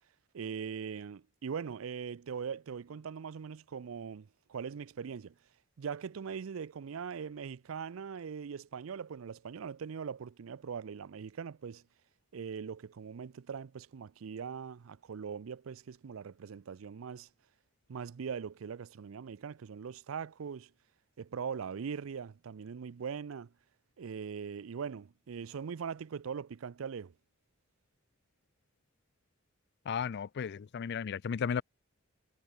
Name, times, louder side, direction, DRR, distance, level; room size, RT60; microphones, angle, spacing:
voice 1, 0.3-5.3 5.8-11.8 12.3-17.3 17.9-20.7 21.2-23.5 24.0-27.1, right 6 dB, 90° right, 0.5 m, -41 dB
voice 2, 29.9-31.6, left 7 dB, 55° left, 0.4 m, -34 dB
head